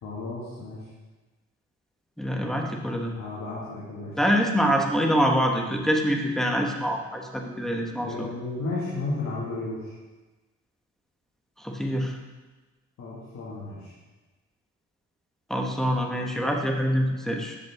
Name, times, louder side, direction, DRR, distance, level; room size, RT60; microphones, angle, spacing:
voice 1, 0.0-0.8 3.1-4.2 8.0-9.9 13.0-13.9, left 2 dB, 70° left, -8 dB, 1.9 m, -33 dB
voice 2, 2.2-3.1 4.2-8.3 11.6-12.2 15.5-17.6, equal, ahead, 1 dB, 1.2 m, -25 dB
8.2 x 6.4 x 3.6 m, 1.2 s
cardioid pair, 90°, 30 cm